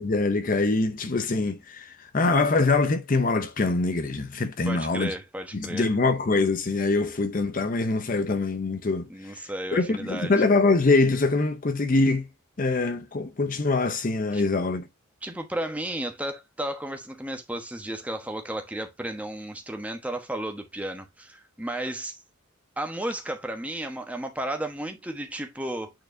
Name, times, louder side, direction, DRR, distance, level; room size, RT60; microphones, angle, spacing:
voice 1, 0.0-5.1 5.5-9.4 9.7-12.3 12.6-14.9, left 3 dB, 40° left, 0.6 m, -24 dB
voice 2, 4.6-5.9 9.1-10.3 14.3-14.5 15.2-22.2 22.8-25.9, right 1 dB, 5° right, 1.1 m, -33 dB
8.9 x 4.5 x 2.6 m
head